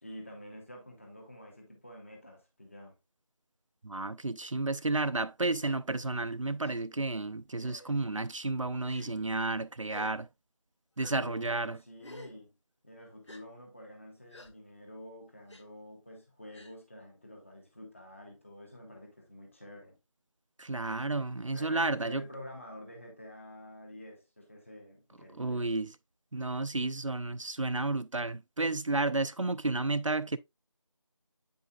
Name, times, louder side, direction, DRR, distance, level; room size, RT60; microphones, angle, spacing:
voice 1, 0.0-2.9 11.1-12.5 12.8-20.0 21.5-25.8, left 1 dB, 25° left, 1.6 m, -48 dB
voice 2, 3.8-10.3 11.0-11.8 20.6-22.2 25.4-25.9 26.3-30.4, right 2 dB, 70° right, 0.5 m, -32 dB
Gasp, 5.6-5.8 6.6-6.7 7.6-8.0 8.8-9.1 9.9-10.1 11.0-11.1 12.0-12.3 13.3-13.4 14.3-14.5 15.5-15.6 16.5-16.7, left 1 dB, 60° left, 1.4 m, -50 dB
8.7 x 5.3 x 2.4 m
figure-of-eight pair, 170°, 17 cm